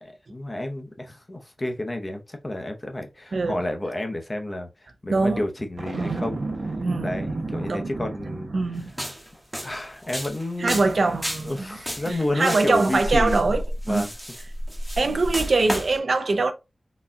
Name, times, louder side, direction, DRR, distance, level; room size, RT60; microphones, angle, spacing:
voice 1, 0.0-4.7 5.0-6.4 7.0-8.5 9.6-11.0 11.4-13.4 13.9-14.1, left 1 dB, 30° left, 0.7 m, -30 dB
voice 2, 3.3-3.6 5.1-5.5 5.9-6.2 6.8-7.1 7.7-7.9 8.5-8.9 10.6-11.8 12.1-13.6 13.9-14.1 15.0-16.5, right 3 dB, 70° right, 0.5 m, -23 dB
Boom, 5.8-9.0, right 2 dB, 85° right, 1.0 m, -32 dB
sound 1, 8.9-16.0, equal, ahead, 0.9 m, -31 dB
3.9 x 2.3 x 2.5 m
wide cardioid pair, 70°, 0 cm